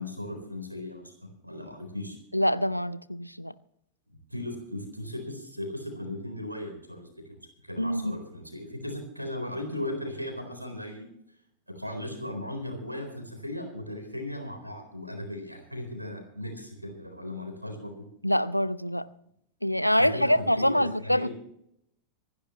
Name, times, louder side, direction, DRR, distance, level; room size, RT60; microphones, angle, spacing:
voice 1, 0.0-2.2 4.3-7.4 7.6-11.0 11.7-18.0 20.0-21.3, left 1 dB, 90° right, 4.0 m, -37 dB
voice 2, 2.3-3.5 7.8-8.2 18.2-19.1 19.6-21.3, equal, 90° left, 0.6 m, -25 dB
25.5 x 11.0 x 3.1 m
figure-of-eight pair, 90°, 0 cm